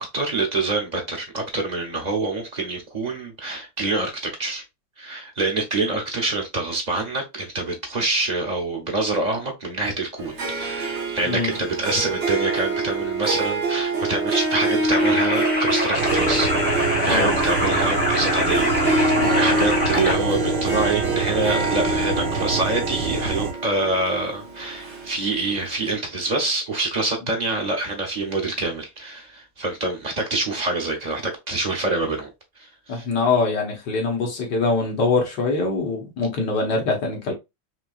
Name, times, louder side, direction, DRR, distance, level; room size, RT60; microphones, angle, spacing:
voice 1, 0.0-4.6 5.0-32.3 32.6-33.0, right 2 dB, 80° right, 0.3 m, -26 dB
Harp, 10.2-25.5, right 2 dB, 45° right, 1.0 m, -25 dB
sound 1, 14.9-20.1, left 1 dB, 5° right, 1.3 m, -24 dB
sound 2, 15.9-23.5, right 5 dB, 65° right, 1.4 m, -27 dB
voice 2, 17.0-17.3 19.2-19.4 32.9-37.3, left 3 dB, 60° left, 1.8 m, -23 dB
5.8 x 2.6 x 2.4 m
omnidirectional pair, 2.2 m